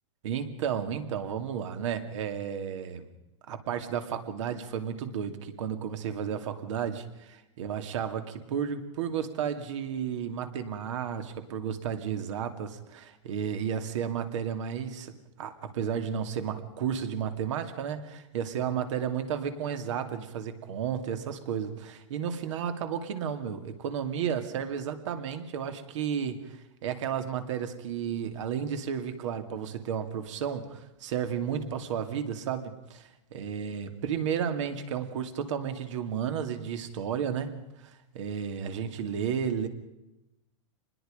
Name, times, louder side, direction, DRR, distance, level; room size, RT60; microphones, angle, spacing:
voice 1, 0.2-3.1 3.5-39.7, right 8 dB, 65° right, 8 dB, 2.6 m, -33 dB
26.5 x 20.5 x 5.2 m, 0.95 s
supercardioid pair, 155°, 17 cm